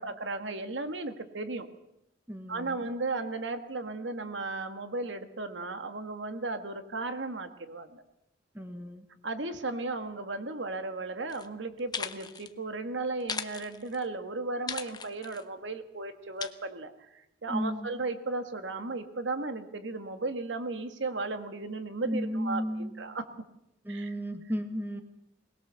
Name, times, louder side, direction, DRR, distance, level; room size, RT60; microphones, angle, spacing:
voice 1, 0.0-1.7 2.5-8.0 9.2-23.3 23.9-24.1, right 3 dB, 85° right, 8 dB, 1.7 m, -35 dB
voice 2, 2.3-2.8 8.5-9.0 17.5-17.9 22.0-22.9 23.8-25.0, equal, 10° right, 7 dB, 1.5 m, -34 dB
sound 1, 11.3-11.5 11.8-12.5 13.2-14.0 14.7-15.4 16.4-16.5, left 5 dB, 20° left, 0.9 m, -37 dB
21.5 x 20.0 x 6.9 m, 0.83 s
head